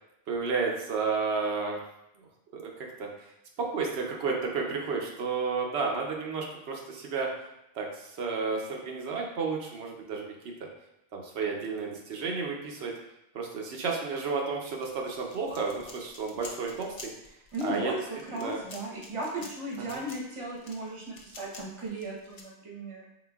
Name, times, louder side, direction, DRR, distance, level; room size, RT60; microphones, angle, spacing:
voice 1, 0.3-1.8 2.5-2.7 3.0-3.1 3.6-7.3 7.7-10.3 11.1-12.9 13.3-16.9 17.6-17.9 18.3-18.6, right 4 dB, 85° right, 0 dB, 0.9 m, -31 dB
sound 1, 14.7-22.4, left 3 dB, 50° left, 0.6 m, -49 dB
voice 2, 17.5-23.0, right 1 dB, 30° right, -3 dB, 0.8 m, -36 dB
3.9 x 3.8 x 2.3 m, 0.86 s
omnidirectional pair, 1.0 m